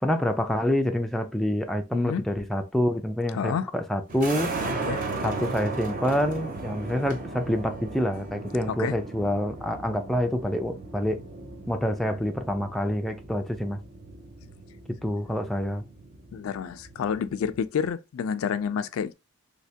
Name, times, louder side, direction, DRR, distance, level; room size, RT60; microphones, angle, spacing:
voice 1, 0.0-4.5 5.2-11.2 11.7-13.8 14.9-15.8, equal, ahead, 0.3 m, -27 dB
voice 2, 1.9-2.2 3.3-3.7 4.8-5.0 8.7-8.9 16.3-19.1, left 7 dB, 85° left, 0.3 m, -29 dB
sound 1, 4.1-17.7, right 3 dB, 40° right, 0.7 m, -37 dB
3.3 x 2.8 x 2.8 m
head